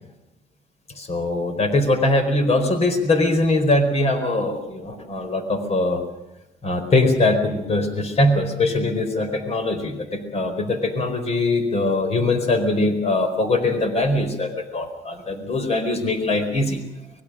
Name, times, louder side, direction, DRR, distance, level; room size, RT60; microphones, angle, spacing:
voice 1, 1.0-6.0 6.6-16.8, left 2 dB, 40° left, 8 dB, 4.6 m, -22 dB
24.5 x 21.0 x 6.3 m, 0.93 s
cardioid pair, 110°, 17 cm